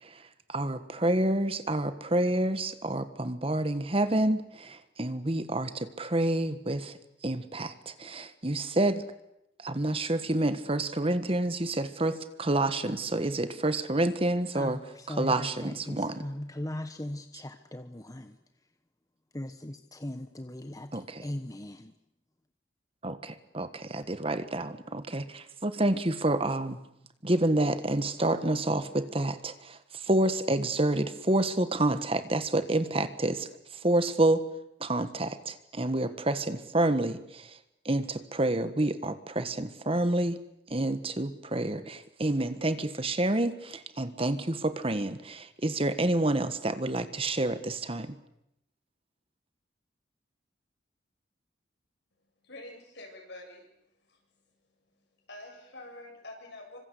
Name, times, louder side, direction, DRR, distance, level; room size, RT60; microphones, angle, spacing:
voice 1, 0.0-6.9 7.2-9.0 9.6-14.8 15.1-16.2 20.9-21.3 23.0-26.8 27.2-34.4 34.8-37.6 37.8-40.4 40.7-48.1, right 1 dB, 30° right, 11 dB, 1.5 m, -28 dB
voice 2, 14.5-18.4 19.3-21.9, left 1 dB, 20° left, 8 dB, 1.1 m, -39 dB
voice 3, 52.4-53.7 54.1-54.2 55.3-56.8, left 2 dB, 70° left, 2 dB, 7.9 m, -46 dB
27.5 x 25.0 x 8.4 m, 0.82 s
head